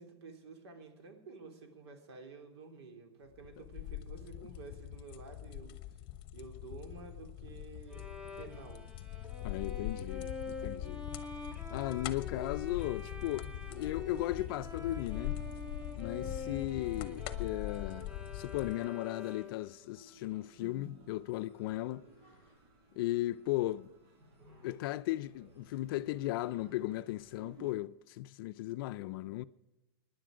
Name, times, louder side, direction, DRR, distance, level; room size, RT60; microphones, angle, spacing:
voice 1, 0.0-6.0 6.3-8.9 10.3-10.4, right 4 dB, 90° right, 3.2 m, -51 dB
sound 1, 3.3-18.8, left 14 dB, 40° left, 1.1 m, -42 dB
Bowed string instrument, 7.9-19.7, left 3 dB, 5° right, 1.5 m, -46 dB
voice 2, 9.4-11.1 11.7-15.4 16.0-22.1 23.0-23.9 24.6-29.5, left 16 dB, 60° left, 0.4 m, -36 dB
sound 2, 12.6-27.7, right 2 dB, 65° right, 5.1 m, -57 dB
24.0 x 10.5 x 5.0 m
supercardioid pair, 155°, 13 cm